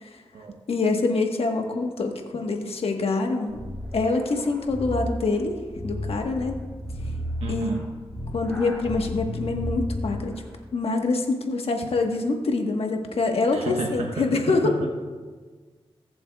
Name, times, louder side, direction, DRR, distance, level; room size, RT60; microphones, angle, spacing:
voice 1, 0.7-3.6 3.9-5.5 5.8-6.6 7.5-7.7 8.3-10.4 10.7-14.7, left 3 dB, 70° left, 3 dB, 1.3 m, -25 dB
sound 1, 3.5-10.4, left 1 dB, 10° left, 3.2 m, -33 dB
voice 2, 7.4-7.8 13.5-14.9, right 3 dB, 75° right, 1 dB, 0.9 m, -31 dB
19.5 x 7.2 x 2.3 m, 1.4 s
cardioid pair, 60°, 10 cm